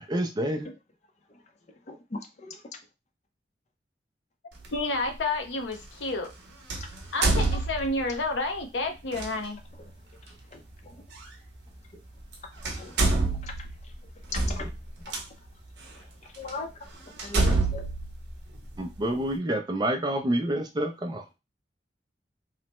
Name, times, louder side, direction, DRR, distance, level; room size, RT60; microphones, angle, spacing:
voice 1, 0.1-0.7 18.8-21.2, right 1 dB, 25° right, 5 dB, 0.4 m, -28 dB
voice 2, 1.9-2.6 7.5-7.6 10.3-11.0 11.9-12.0 12.6-13.1 13.4-13.7 14.3-14.7 15.1-15.2 16.0-16.1 16.3-17.9, left 2 dB, 40° left, 5 dB, 0.5 m, -40 dB
sound 1, 4.6-4.8 6.7-8.2 9.1-9.3 11.2-11.3 12.2-12.3 12.6-15.2 15.9-16.0 16.5-16.6 17.2-19.0, right 2 dB, 65° right, 0.7 m, -27 dB
voice 3, 4.7-6.3 7.1-9.6, left 2 dB, 80° left, 5 dB, 0.6 m, -30 dB
3.2 x 2.0 x 3.0 m, 0.25 s
head